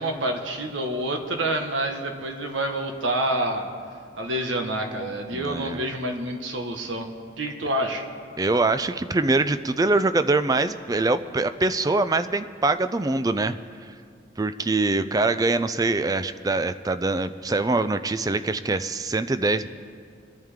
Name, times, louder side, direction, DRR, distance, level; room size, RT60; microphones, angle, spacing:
voice 1, 0.0-3.7 4.1-7.1 7.4-8.0, right 1 dB, 85° right, 3 dB, 1.5 m, -27 dB
voice 2, 5.3-5.8 8.4-13.6 14.4-19.7, right 3 dB, 20° right, 12 dB, 0.3 m, -23 dB
23.5 x 10.5 x 3.7 m, 2.2 s
head